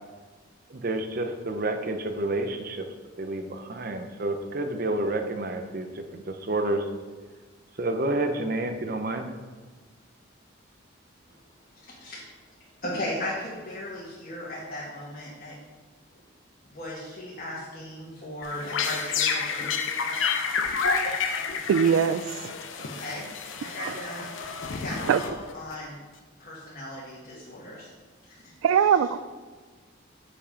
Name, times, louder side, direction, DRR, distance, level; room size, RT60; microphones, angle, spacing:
voice 1, 0.7-2.8 3.2-5.9 6.1-6.8 7.8-9.3, right 2 dB, 45° right, 6 dB, 0.7 m, -29 dB
voice 2, 11.7-12.2 12.8-15.5 16.7-20.3 22.8-23.3 23.6-24.3 24.7-25.9 26.4-27.9 28.2-29.0, left 1 dB, 45° left, -7 dB, 1.6 m, -37 dB
sound 1, 18.4-25.7, left 5 dB, 75° left, 0.7 m, -30 dB
voice 3, 21.7-22.2 25.1-25.2 28.6-29.2, right 7 dB, 85° right, 13 dB, 0.3 m, -20 dB
7.1 x 5.3 x 5.1 m, 1.4 s
head